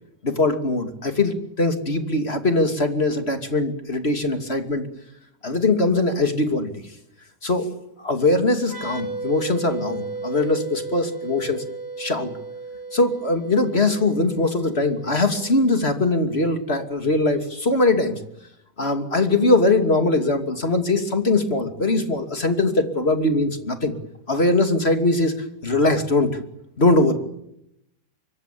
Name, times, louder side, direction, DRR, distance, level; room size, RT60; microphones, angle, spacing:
voice 1, 0.2-4.8 5.4-6.7 7.4-7.7 8.0-11.6 12.0-12.3 12.9-18.2 18.8-24.0 24.3-25.4 25.6-26.3 26.8-27.2, left 2 dB, 35° left, 7 dB, 2.9 m, -21 dB
sound 1, 8.6-16.1, right 3 dB, 35° right, 4.7 m, -35 dB
25.5 x 23.5 x 8.6 m, 0.80 s
omnidirectional pair, 1.8 m